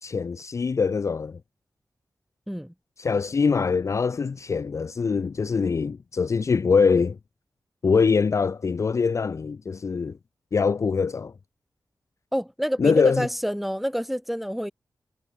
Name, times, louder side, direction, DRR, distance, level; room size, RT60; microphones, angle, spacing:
voice 1, 0.0-1.4 3.0-7.2 7.8-10.2 10.5-11.3 12.8-13.3, left 5 dB, 45° left, 0.4 m, -23 dB
voice 2, 12.3-14.7, equal, ahead, 1.2 m, -28 dB
wide cardioid pair, 90°, 7 cm